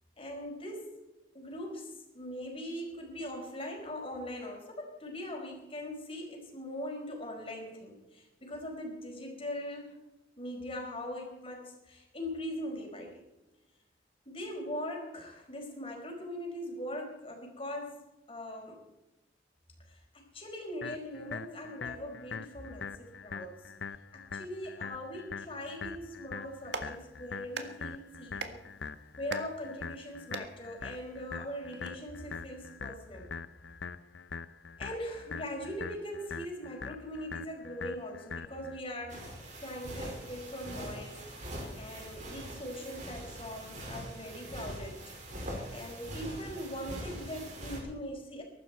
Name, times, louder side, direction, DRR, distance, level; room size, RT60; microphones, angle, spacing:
voice 1, 0.2-1.0 1.3-9.9 10.4-13.2 14.2-18.0 18.3-18.8 19.9-23.6 24.1-28.6 29.2-33.3 34.8-39.3 39.6-41.2 41.8-45.0 45.7-48.4, left 1 dB, 30° left, 1 dB, 4.8 m, -41 dB
sound 1, 20.8-38.8, left 5 dB, 70° left, 0.7 m, -43 dB
Clapping, 26.4-31.9, right 4 dB, 65° right, 1.7 m, -45 dB
sound 2, 39.1-47.8, right 1 dB, 40° right, 5.3 m, -43 dB
22.5 x 12.5 x 4.5 m, 0.99 s
head